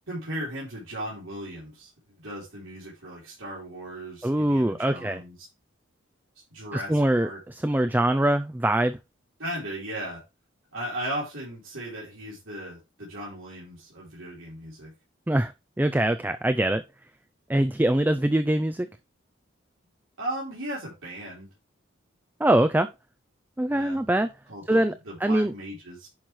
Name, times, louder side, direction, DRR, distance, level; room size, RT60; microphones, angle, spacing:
voice 1, 0.1-1.9 2.2-5.4 6.5-7.4 9.4-10.2 10.7-14.9 20.2-21.5 23.7-24.0 24.5-26.1, right 1 dB, 75° right, 4.4 m, -36 dB
voice 2, 4.2-5.2 6.7-9.0 15.3-15.5 15.8-16.8 17.5-18.9 22.4-22.9 23.6-24.3 24.7-24.9 25.2-25.5, right 1 dB, 10° right, 0.3 m, -23 dB
10.5 x 5.8 x 3.2 m
head